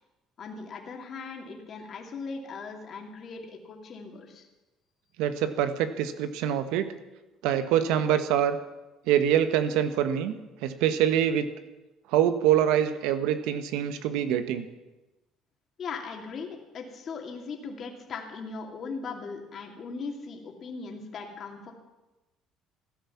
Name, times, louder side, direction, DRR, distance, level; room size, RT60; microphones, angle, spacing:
voice 1, 0.4-4.4 15.8-21.7, left 4 dB, 40° left, 2 dB, 2.7 m, -39 dB
voice 2, 5.2-6.8 7.4-8.6 9.1-10.3 10.6-11.5 12.1-14.6, right 10 dB, 90° right, 10 dB, 1.4 m, -25 dB
15.5 x 12.0 x 7.3 m, 1.0 s
cardioid pair, 140°, 0 cm